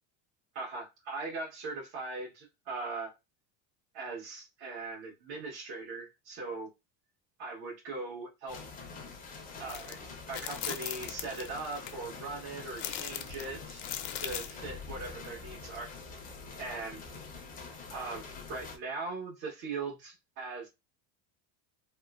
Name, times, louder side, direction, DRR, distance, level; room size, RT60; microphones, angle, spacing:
voice 1, 0.5-3.1 3.9-6.7 7.4-8.6 9.6-10.0 10.3-13.8 14.2-15.9 16.6-17.1 17.9-20.7, right 3 dB, 85° right, -4 dB, 1.3 m, -40 dB
sound 1, 8.5-18.8, left 4 dB, 20° left, 0.4 m, -46 dB
sound 2, 9.7-9.9 10.3-11.9 12.8-14.6, left 11 dB, 70° left, 0.6 m, -39 dB
2.9 x 2.0 x 2.3 m, 0.23 s
cardioid pair, 135°, 49 cm